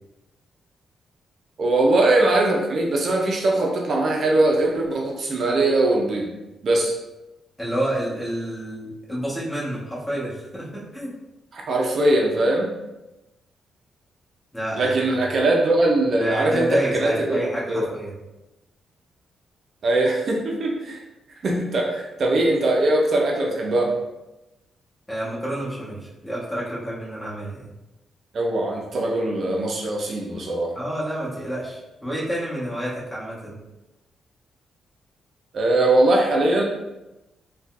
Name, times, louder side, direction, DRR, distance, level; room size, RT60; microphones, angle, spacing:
voice 1, 1.6-6.3 6.6-6.9 11.5-12.7 14.8-17.9 19.8-21.0 21.4-24.0 28.3-30.7 35.5-36.6, right 2 dB, 60° right, -1 dB, 0.5 m, -21 dB
voice 2, 7.6-11.1 14.5-14.9 16.1-18.1 25.1-27.7 30.7-33.6, right 1 dB, 15° left, -7 dB, 1.4 m, -29 dB
3.8 x 2.3 x 2.5 m, 0.99 s
cardioid pair, 75°, 0 cm